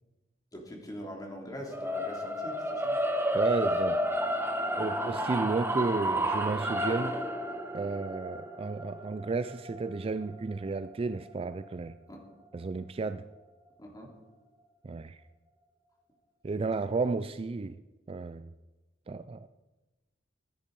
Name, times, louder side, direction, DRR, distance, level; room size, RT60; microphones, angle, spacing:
voice 1, 0.5-3.0 12.1-12.2 13.8-14.1, equal, 20° left, 0 dB, 2.9 m, -42 dB
sound 1, 1.7-11.9, equal, 15° right, 0.9 m, -32 dB
voice 2, 3.3-4.0 4.8-7.2 7.7-12.0 12.5-13.2 14.8-15.2 16.4-17.8 18.1-18.5 19.1-19.5, right 3 dB, 30° right, 13 dB, 0.4 m, -32 dB
15.0 x 10.0 x 5.3 m, 1.1 s
head